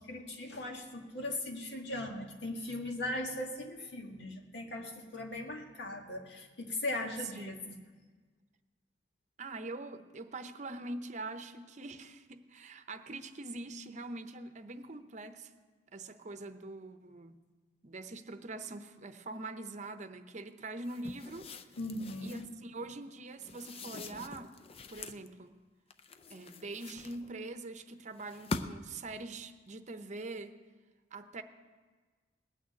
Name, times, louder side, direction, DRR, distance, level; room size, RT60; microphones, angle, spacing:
voice 1, 0.0-7.8 21.8-22.5, left 1 dB, 80° left, 1 dB, 1.9 m, -39 dB
voice 2, 7.4-7.7 9.4-15.5 15.9-17.4 17.8-21.5 22.2-24.6 24.9-25.6 26.3-30.6 31.1-31.4, right 2 dB, 45° right, 9 dB, 0.7 m, -43 dB
sound 1, 20.8-22.5 23.4-25.3 25.9-27.5 28.2-29.0, left 3 dB, 35° left, 0.5 m, -43 dB
19.0 x 6.4 x 8.4 m, 1.4 s
head